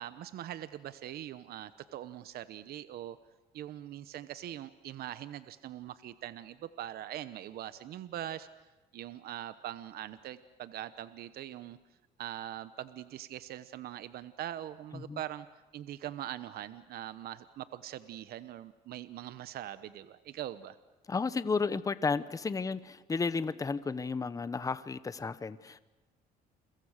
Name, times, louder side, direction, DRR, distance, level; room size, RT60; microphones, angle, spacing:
voice 1, 0.0-3.2 3.5-8.5 8.9-11.8 12.2-15.5 15.7-20.8, right 12 dB, 65° right, 14 dB, 1.0 m, -42 dB
voice 2, 21.1-25.8, left 4 dB, 20° left, 15 dB, 1.0 m, -33 dB
30.0 x 23.5 x 6.6 m, 1.2 s
cardioid pair, 110°, 17 cm